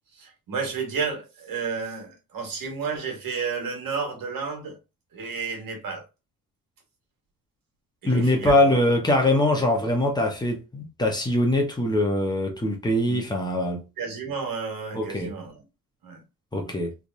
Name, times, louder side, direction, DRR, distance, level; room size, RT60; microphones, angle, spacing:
voice 1, 0.1-4.8 5.1-6.0 8.0-8.8 13.1-13.2 14.0-15.6 16.0-16.2 16.6-16.7, right 5 dB, 85° right, 1.6 m, -32 dB
voice 2, 8.0-13.8 14.9-15.3 16.5-17.0, left 1 dB, 10° left, 0.9 m, -23 dB
3.4 x 2.9 x 2.6 m
wide cardioid pair, 165°, 34 cm